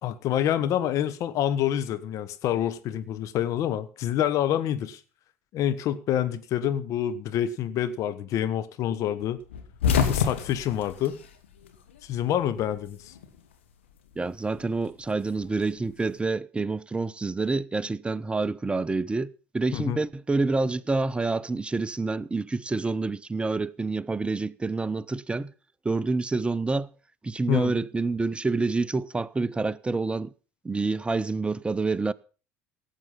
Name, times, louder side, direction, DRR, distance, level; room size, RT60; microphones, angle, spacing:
voice 1, 0.0-5.0 5.5-9.4 10.0-11.2 12.0-13.1 19.7-20.0 27.5-27.7, left 10 dB, 60° left, 1.5 m, -27 dB
sound 1, 9.5-12.0 12.3-13.4 14.6-16.1, left 7 dB, 90° left, 1.9 m, -28 dB
voice 2, 14.2-25.5 25.8-26.9 27.2-30.3 30.6-32.1, right 3 dB, 15° right, 0.7 m, -27 dB
17.5 x 7.9 x 5.7 m
hypercardioid pair, 70°, 6 cm